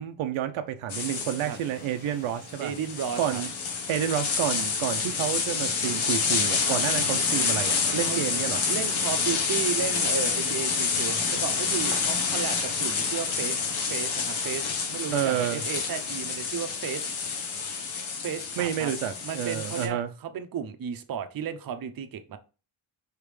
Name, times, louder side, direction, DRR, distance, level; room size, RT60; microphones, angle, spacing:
voice 1, 0.0-2.7 3.2-3.5 3.9-8.6 15.1-15.6 18.6-20.1, right 10 dB, 85° right, 0.7 m, -29 dB
sound 1, 0.9-19.9, left 5 dB, 90° left, 1.3 m, -28 dB
voice 2, 2.6-3.4 6.6-6.8 8.0-8.2 8.7-13.6 13.9-17.1 18.2-18.9 19.2-22.4, right 8 dB, 45° right, 0.7 m, -34 dB
4.8 x 3.5 x 3.2 m
cardioid pair, 120°, 46 cm